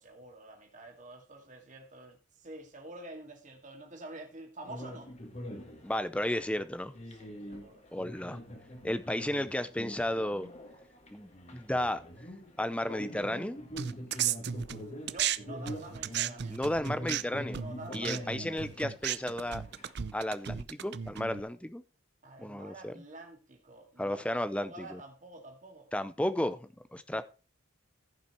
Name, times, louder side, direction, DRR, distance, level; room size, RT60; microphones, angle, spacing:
voice 1, 0.0-5.1 7.1-7.8 14.7-16.6 17.5-18.7 22.2-25.9, right 2 dB, 40° right, 2.3 m, -48 dB
sound 1, 4.6-19.9, equal, 35° left, 1.9 m, -44 dB
voice 2, 5.8-6.9 7.9-8.4 8.8-10.5 11.1-12.0 12.6-13.6 16.4-17.6 17.9-19.6 20.1-21.8 22.4-22.9 24.0-25.0 25.9-27.2, left 1 dB, 5° left, 0.6 m, -33 dB
sound 2, 13.8-15.4 15.7-21.4, right 10 dB, 55° right, 0.5 m, -35 dB
15.0 x 5.8 x 4.4 m
head